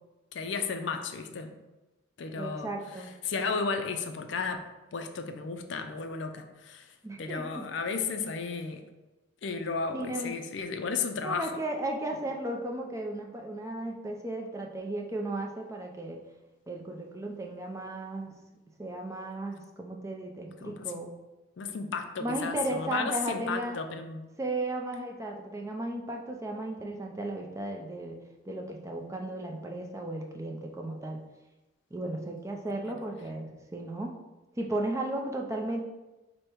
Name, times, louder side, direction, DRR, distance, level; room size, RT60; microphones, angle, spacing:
voice 1, 0.3-1.5 2.2-2.7 3.3-4.6 4.9-6.9 7.2-8.8 9.4-11.6 20.6-21.0 21.6-24.2, left 5 dB, 60° left, 7 dB, 0.4 m, -33 dB
voice 2, 2.4-3.1 7.0-7.6 9.9-10.3 11.2-16.2 16.7-18.3 18.8-21.1 22.2-23.8 24.4-28.2 28.5-31.2 31.9-34.1 34.5-35.8, right 1 dB, 15° right, 1 dB, 0.4 m, -35 dB
4.9 x 2.1 x 4.4 m, 1.1 s
head